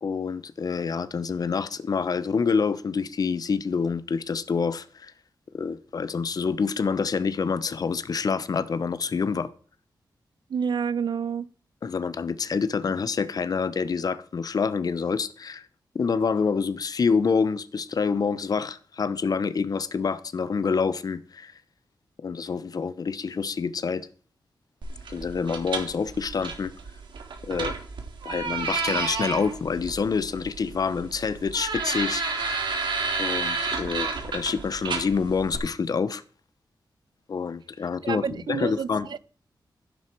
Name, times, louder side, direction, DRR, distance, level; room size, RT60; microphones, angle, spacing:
voice 1, 0.0-5.1 5.5-9.5 11.8-15.7 15.9-21.5 22.2-24.1 25.1-26.7 27.4-27.7 28.2-32.5 33.2-36.2 37.3-39.1, left 5 dB, 55° left, 0.9 m, -27 dB
voice 2, 10.5-11.5 38.0-39.2, right 6 dB, 70° right, 0.8 m, -29 dB
sound 1, 24.8-35.6, right 4 dB, 90° right, 3.2 m, -31 dB
16.0 x 9.3 x 4.7 m
wide cardioid pair, 145°, 8 cm